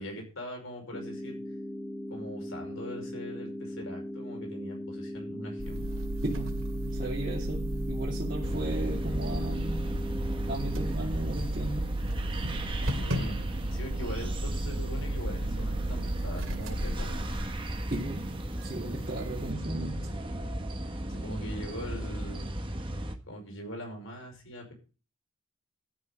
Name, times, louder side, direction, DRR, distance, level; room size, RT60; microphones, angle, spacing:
voice 1, 0.0-1.4 2.1-5.9 13.0-13.4 13.7-17.3 21.1-22.5 23.3-24.7, equal, 75° left, 5.3 m, -41 dB
sound 1, 0.9-10.9, left 1 dB, 5° left, 1.1 m, -39 dB
sound 2, 5.6-18.2, right 1 dB, 70° right, 2.8 m, -34 dB
voice 2, 6.2-9.9 10.5-12.1 17.9-20.2, right 2 dB, 40° right, 2.7 m, -36 dB
sound 3, 8.4-23.2, right 1 dB, 25° right, 1.4 m, -36 dB
13.0 x 6.5 x 7.8 m
head